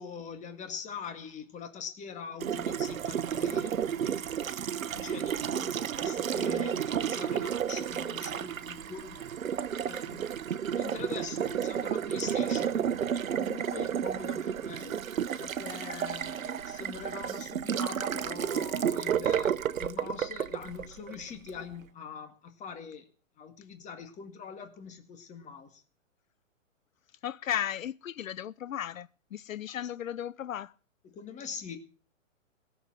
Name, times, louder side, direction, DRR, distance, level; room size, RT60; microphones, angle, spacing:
voice 1, 0.0-9.3 9.9-12.8 13.1-15.0 15.4-23.0 23.4-25.8 29.7-29.8 31.0-31.8, left 6 dB, 20° left, 2.0 m, -43 dB
Water tap faucet, 2.4-21.6, right 8 dB, 85° right, 1.0 m, -32 dB
voice 2, 27.2-30.7, left 10 dB, 85° left, 0.7 m, -35 dB
17.5 x 7.2 x 7.4 m
hypercardioid pair, 140°, 39 cm